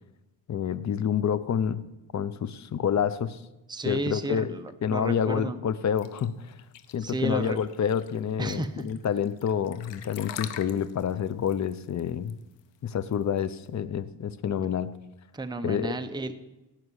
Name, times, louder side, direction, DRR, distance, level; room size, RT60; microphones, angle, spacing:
voice 1, 0.5-1.8 2.1-3.4 3.9-4.5 4.8-6.5 6.9-12.3 12.8-14.9 15.6-16.0, left 8 dB, 40° left, 14 dB, 0.8 m, -28 dB
voice 2, 3.7-5.6 7.0-7.6 8.4-8.9 15.3-16.3, right 2 dB, 10° right, 7 dB, 0.9 m, -32 dB
sound 1, 6.0-13.7, left 11 dB, 85° left, 1.1 m, -44 dB
16.5 x 6.0 x 9.8 m, 0.98 s
cardioid pair, 120°, 43 cm